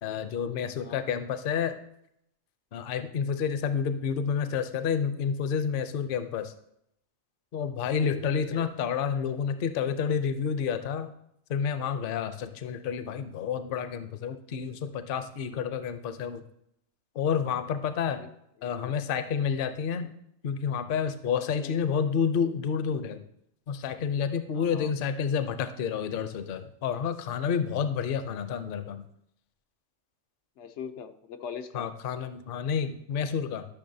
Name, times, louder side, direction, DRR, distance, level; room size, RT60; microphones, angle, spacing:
voice 1, 0.0-1.8 2.7-6.5 7.5-11.1 11.5-16.4 17.2-18.2 18.6-20.1 20.4-23.2 23.7-29.0 31.7-33.7, left 7 dB, 60° left, 10 dB, 0.7 m, -29 dB
voice 2, 7.8-8.2 8.5-8.6 18.2-18.3 18.7-18.9 21.6-21.8 24.6-24.9 30.6-31.8, left 7 dB, 90° left, 7 dB, 1.0 m, -41 dB
12.0 x 6.2 x 2.7 m, 0.75 s
omnidirectional pair, 1.2 m